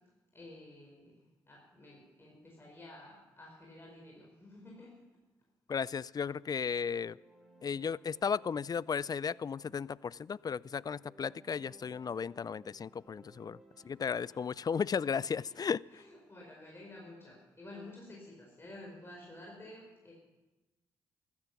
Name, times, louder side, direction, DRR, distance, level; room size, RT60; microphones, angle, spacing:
voice 1, 0.3-5.1 13.7-14.4 15.0-15.6 15.9-20.1, left 1 dB, 25° left, -2 dB, 4.8 m, -52 dB
voice 2, 5.7-7.2 7.6-13.6 13.8-16.0, left 6 dB, 40° left, 23 dB, 0.4 m, -35 dB
sound 1, 6.6-14.5, right 2 dB, ahead, 3.0 m, -62 dB
14.5 x 13.0 x 6.0 m, 1.1 s
supercardioid pair, 45°, 10 cm